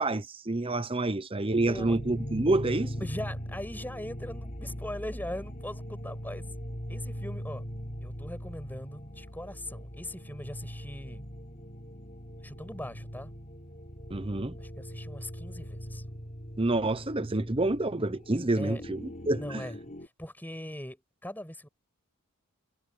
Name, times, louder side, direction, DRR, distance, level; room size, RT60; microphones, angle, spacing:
voice 1, 0.0-2.9 14.1-14.5 16.6-19.6, right 2 dB, 25° right, 0.9 m, -28 dB
sound 1, 1.5-20.1, equal, 35° left, 3.4 m, -40 dB
voice 2, 3.0-6.5 6.9-7.7 8.0-11.3 12.4-13.3 14.6-16.0 18.5-18.8 19.3-19.8 20.0-21.7, left 1 dB, 10° left, 5.6 m, -40 dB
head